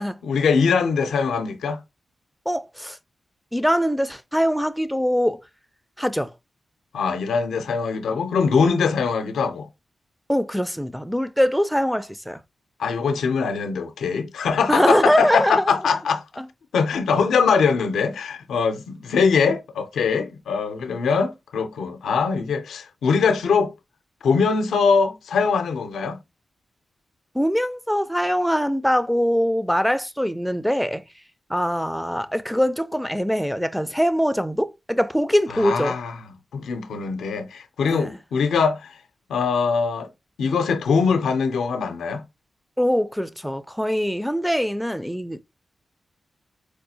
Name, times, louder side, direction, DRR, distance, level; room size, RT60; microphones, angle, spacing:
voice 1, 0.2-1.8 6.9-9.7 12.8-16.2 16.7-23.7 24.2-26.2 35.5-36.2 36.5-38.9 39.3-40.1 40.4-42.2, left 5 dB, 85° left, 0.6 m, -22 dB
voice 2, 2.5-3.0 3.5-5.4 6.0-6.3 10.3-12.4 14.7-15.8 16.4-16.5 27.3-31.0 31.5-36.0 37.9-38.2 42.8-45.4, equal, ahead, 0.5 m, -23 dB
4.6 x 2.4 x 2.7 m
cardioid pair, 45°, 0 cm